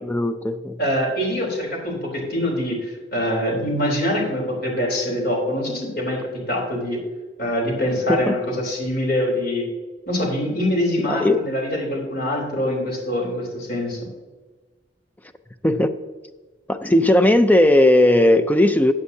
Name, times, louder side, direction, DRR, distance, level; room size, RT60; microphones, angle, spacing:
voice 1, 0.0-0.8 8.1-8.4 11.1-11.4 15.6-15.9 16.7-18.9, left 1 dB, 10° left, 9 dB, 0.5 m, -17 dB
voice 2, 0.8-7.0 7.4-9.7 10.1-14.0, left 1 dB, 55° left, -1 dB, 3.5 m, -24 dB
14.5 x 8.6 x 2.8 m, 1.3 s
head